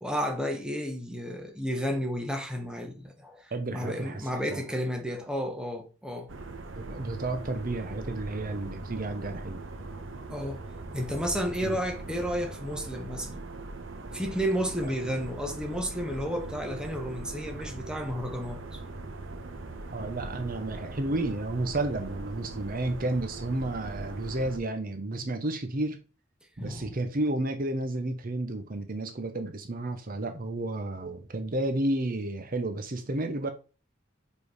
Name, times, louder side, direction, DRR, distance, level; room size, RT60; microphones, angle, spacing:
voice 1, 0.0-6.3 10.3-10.6 10.9-13.4 14.1-18.8 26.6-26.9, equal, 5° right, 1.1 m, -32 dB
voice 2, 3.5-4.6 6.7-9.6 11.6-11.8 14.8-14.9 19.9-26.0 26.6-33.5, right 2 dB, 45° right, 0.8 m, -32 dB
sound 1, 6.3-24.6, right 2 dB, 70° right, 1.0 m, -40 dB
5.2 x 4.6 x 4.8 m
head